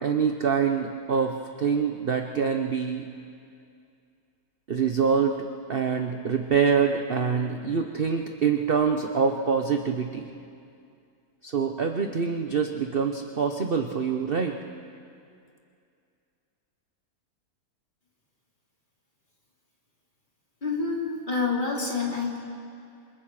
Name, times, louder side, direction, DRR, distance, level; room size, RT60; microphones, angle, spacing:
voice 1, 0.0-3.1 4.7-10.3 11.4-14.6, right 6 dB, 40° right, 4 dB, 0.9 m, -25 dB
voice 2, 20.6-22.4, left 4 dB, 25° left, -3 dB, 3.7 m, -27 dB
27.5 x 27.0 x 4.9 m, 2.4 s
omnidirectional pair, 1.8 m